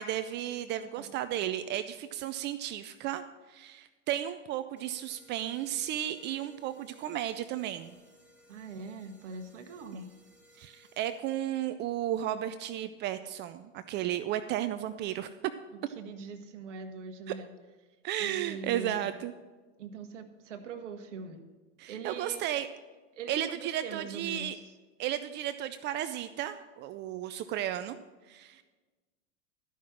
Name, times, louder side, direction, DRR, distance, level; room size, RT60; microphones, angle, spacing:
voice 1, 0.0-3.2 3.5-8.0 9.9-10.1 10.6-15.3 17.3-17.4 18.0-19.3 21.8-22.7 23.3-24.6 25.0-28.0 28.3-28.6, right 12 dB, 30° right, 11 dB, 0.4 m, -34 dB
sound 1, 4.8-11.5, equal, 5° right, 1.5 m, -61 dB
voice 2, 8.5-10.1 15.7-17.5 18.2-19.1 19.8-21.5 21.9-22.4 23.1-24.7, right 4 dB, 75° right, 6 dB, 1.1 m, -42 dB
12.5 x 5.7 x 6.3 m, 1.3 s
hypercardioid pair, 100°, 36 cm